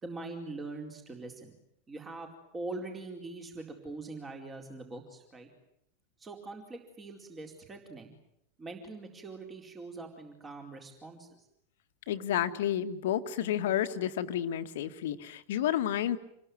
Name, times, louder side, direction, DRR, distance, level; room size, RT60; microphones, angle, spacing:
voice 1, 0.0-1.6 1.9-5.5 6.2-8.2 8.6-11.4, right 3 dB, 15° right, 3 dB, 4.4 m, -43 dB
voice 2, 12.1-16.2, left 11 dB, 55° left, 10 dB, 1.8 m, -30 dB
28.0 x 22.0 x 9.6 m, 0.77 s
figure-of-eight pair, 90°, 0 cm